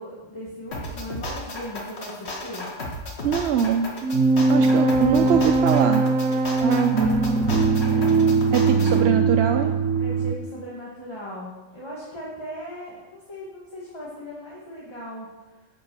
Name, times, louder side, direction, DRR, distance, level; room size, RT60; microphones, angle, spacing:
voice 1, 0.0-2.7 4.5-5.4 6.6-8.3 10.0-15.3, equal, 20° left, -5 dB, 1.5 m, -38 dB
sound 1, 0.7-9.0, left 1 dB, 55° left, 1.8 m, -34 dB
voice 2, 3.2-3.9 4.5-6.1 8.5-9.7, right 8 dB, 65° right, 6 dB, 0.8 m, -23 dB
sound 2, 4.0-10.4, right 4 dB, 85° right, 1.0 m, -20 dB
10.0 x 5.4 x 6.8 m, 1.2 s
omnidirectional pair, 1.3 m